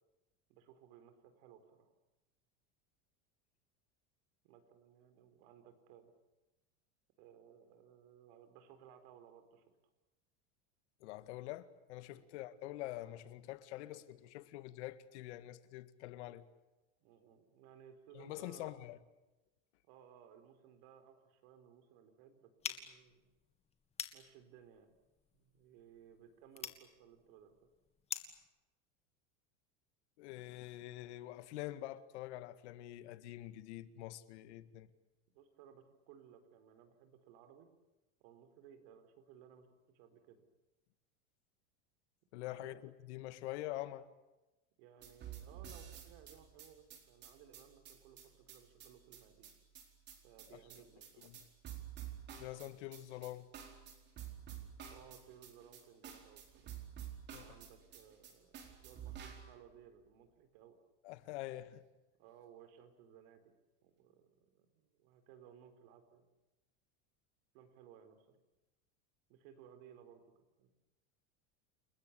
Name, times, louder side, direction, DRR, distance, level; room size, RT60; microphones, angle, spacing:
voice 1, 0.5-1.9 4.4-6.1 7.2-9.6 12.1-12.3 17.0-18.8 19.8-23.3 24.1-24.9 25.3-27.5 35.3-37.7 38.2-40.4 42.4-42.8 44.8-49.5 50.2-51.3 54.9-56.7 57.4-60.8 62.2-63.5 63.8-66.2 67.5-68.4 69.3-70.2 70.6-70.7, right 9 dB, 60° right, 4.5 m, -60 dB
voice 2, 11.0-16.5 18.1-19.0 30.2-34.9 42.3-44.1 50.5-50.6 51.2-51.4 52.4-53.5 57.3-57.5 61.0-61.8, left 15 dB, 70° left, 2.0 m, -46 dB
sound 1, 22.6-28.5, left 7 dB, 15° left, 2.0 m, -48 dB
sound 2, 45.0-59.6, right 9 dB, 30° right, 4.6 m, -50 dB
29.5 x 21.5 x 8.5 m
supercardioid pair, 170°, 35 cm